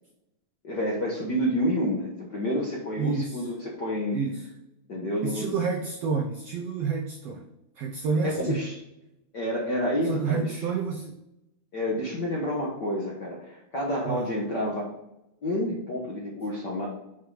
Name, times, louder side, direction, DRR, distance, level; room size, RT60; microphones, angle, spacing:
voice 1, 0.6-4.2 4.9-5.5 8.2-8.8 9.3-10.6 11.7-14.9 15.4-16.9, equal, 55° left, -4 dB, 1.2 m, -29 dB
voice 2, 3.0-3.5 4.1-4.5 5.2-7.5 7.8-8.6 10.0-11.2 14.0-14.3, right 5 dB, 85° right, 3 dB, 1.4 m, -29 dB
6.3 x 4.6 x 4.9 m, 0.87 s
omnidirectional pair, 3.7 m